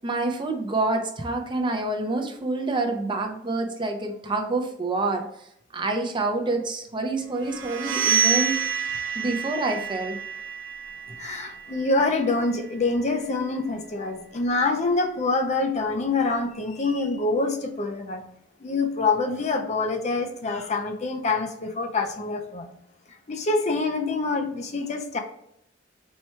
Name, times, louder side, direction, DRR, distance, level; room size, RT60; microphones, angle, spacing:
voice 1, 0.0-5.3 5.7-8.6 9.1-10.2, right 2 dB, 25° right, 4 dB, 0.5 m, -27 dB
sound 1, 7.5-13.1, right 7 dB, 80° right, 0.8 m, -28 dB
voice 2, 11.2-18.2 18.6-22.7 23.3-25.2, left 3 dB, 40° left, 4 dB, 0.5 m, -26 dB
4.4 x 2.2 x 4.3 m, 0.76 s
head